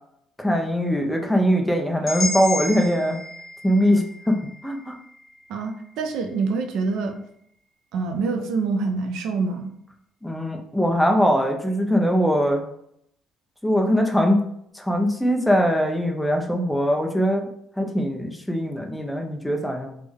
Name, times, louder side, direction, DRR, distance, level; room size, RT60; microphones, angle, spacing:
voice 1, 0.4-3.2 3.6-4.4 4.6-5.0 10.2-12.6 13.6-14.4 14.7-17.5 17.8-20.0, equal, 5° left, 2 dB, 0.3 m, -21 dB
sound 1, 2.1-6.1, left 3 dB, 25° left, 0.9 m, -33 dB
voice 2, 5.5-7.2 7.9-9.7, right 4 dB, 65° right, 5 dB, 0.4 m, -26 dB
3.5 x 2.1 x 3.4 m, 0.72 s
cardioid pair, 180°, 0 cm